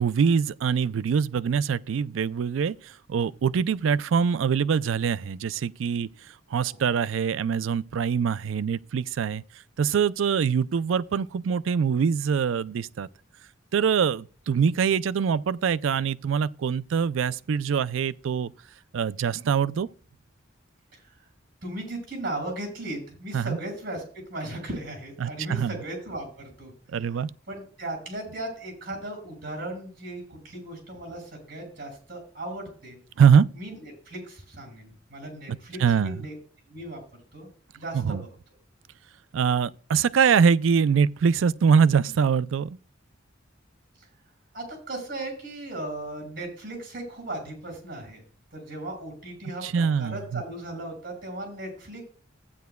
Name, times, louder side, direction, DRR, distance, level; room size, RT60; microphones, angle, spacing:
voice 1, 0.0-6.1 6.5-9.4 9.8-13.1 13.7-18.5 18.9-19.9 23.3-23.6 25.2-25.7 26.9-27.3 33.2-33.4 35.8-36.2 37.9-38.2 39.3-42.7 49.6-50.4, right 6 dB, 80° right, 0.4 m, -23 dB
voice 2, 21.6-26.7 27.1-33.0 33.5-36.4 36.7-37.0 37.3-37.5 37.7-38.3 44.0-44.1 44.5-48.2 48.5-52.0, right 1 dB, 50° right, 5.8 m, -37 dB
15.0 x 9.3 x 2.3 m
head